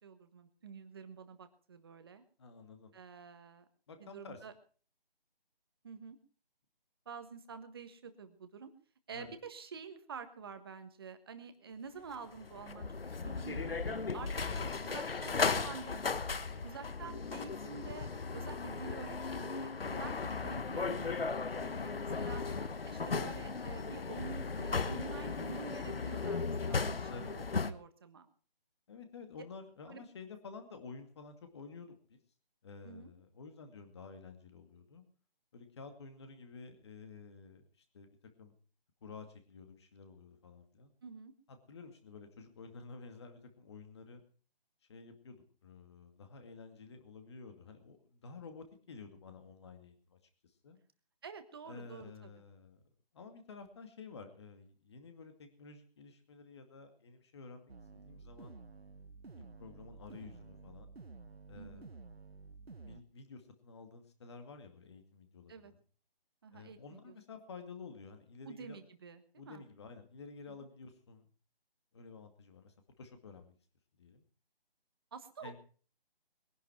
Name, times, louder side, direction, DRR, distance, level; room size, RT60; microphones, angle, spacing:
voice 1, 0.0-2.2 2.9-3.7 4.0-4.5 5.8-6.2 7.0-8.7 9.1-14.3 14.5-15.4 15.6-16.2 16.6-22.4 22.9-28.3 29.9-30.0 32.8-33.1 41.0-41.3 51.2-52.3 61.5-61.9 65.5-65.7 66.4-67.1 68.4-69.6 70.6-70.7 75.1-75.6, right 5 dB, 25° right, 10 dB, 1.4 m, -48 dB
voice 2, 2.4-2.9 3.9-4.4 9.1-9.3 14.1-15.8 16.4-16.8 19.9-20.0 22.4-22.7 27.1-27.3 28.9-32.2 32.6-35.0 35.5-38.5 39.0-40.9 41.5-44.2 44.9-50.2 50.4-50.8 51.7-52.8 53.1-58.5 59.4-60.9 61.5-61.9 62.8-65.8 66.5-68.8 69.3-71.3 71.9-73.6 74.0-74.2 75.4-75.6, left 4 dB, 30° left, 7 dB, 2.3 m, -51 dB
sound 1, 12.1-27.7, left 4 dB, 70° left, 1.3 m, -36 dB
sound 2, 57.7-63.0, right 4 dB, 90° right, 1.4 m, -52 dB
22.0 x 11.0 x 4.6 m, 0.41 s
figure-of-eight pair, 165°, 30 cm